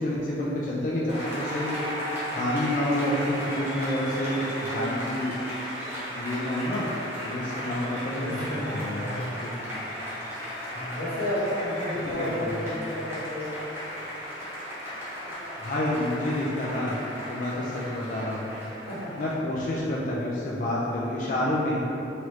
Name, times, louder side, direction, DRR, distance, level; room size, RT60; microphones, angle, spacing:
voice 1, 0.0-1.7 2.4-5.3 6.1-6.9 7.2-8.5 8.7-9.5 12.2-12.5 15.6-16.9 17.3-18.4 19.2-21.8, left 1 dB, 45° left, -5 dB, 0.4 m, -28 dB
Applause, 1.1-19.4, equal, 15° right, 0.9 m, -36 dB
voice 2, 8.1-9.3 10.7-13.6 18.9-19.1, left 1 dB, 90° left, -7 dB, 1.0 m, -31 dB
3.8 x 3.0 x 3.1 m, 3.0 s
head